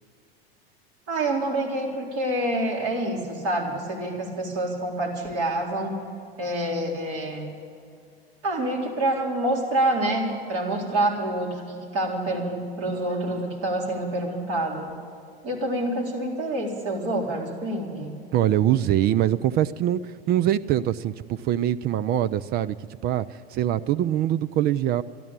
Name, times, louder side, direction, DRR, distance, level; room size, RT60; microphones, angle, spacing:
voice 1, 1.1-6.0 6.4-7.6 8.4-15.0 15.4-18.2, right 1 dB, 50° right, -1 dB, 4.0 m, -27 dB
voice 2, 18.3-25.0, right 12 dB, 35° right, 14 dB, 0.4 m, -23 dB
13.5 x 12.0 x 8.9 m, 2.4 s
hypercardioid pair, 90°, 31 cm